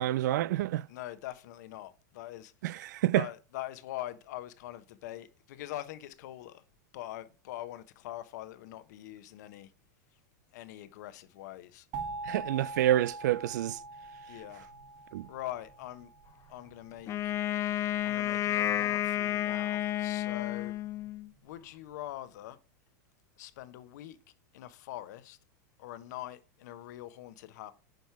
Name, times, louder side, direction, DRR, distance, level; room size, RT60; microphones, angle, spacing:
voice 1, 0.0-0.8 2.6-3.2 12.3-13.8 15.1-15.3, right 13 dB, 75° right, 0.5 m, -28 dB
voice 2, 0.9-2.5 3.1-6.6 6.9-9.7 10.5-11.9 14.3-14.7 15.2-16.1 16.5-17.3 17.6-20.8 21.4-22.6 23.4-24.2 24.5-25.4 25.8-27.7, left 14 dB, 70° left, 1.1 m, -43 dB
sound 1, 11.9-16.7, right 3 dB, 40° right, 2.4 m, -43 dB
Wind instrument woodwind instrument, 17.1-21.3, left 12 dB, 30° left, 0.6 m, -31 dB
9.2 x 5.4 x 4.7 m
hypercardioid pair, 125°, 10 cm